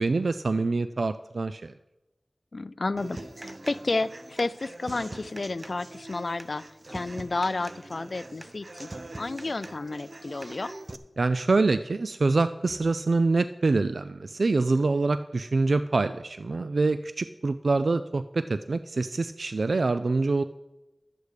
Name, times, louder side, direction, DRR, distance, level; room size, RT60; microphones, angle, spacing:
voice 1, 0.0-1.7 11.2-20.4, right 3 dB, 80° right, 12 dB, 0.3 m, -25 dB
voice 2, 2.5-8.9 9.2-10.7, left 3 dB, 60° left, 16 dB, 0.4 m, -31 dB
Human voice / Acoustic guitar, 3.0-11.0, right 2 dB, 45° right, 0.6 m, -43 dB
11.5 x 8.4 x 4.8 m, 1.0 s
wide cardioid pair, 70°, 0 cm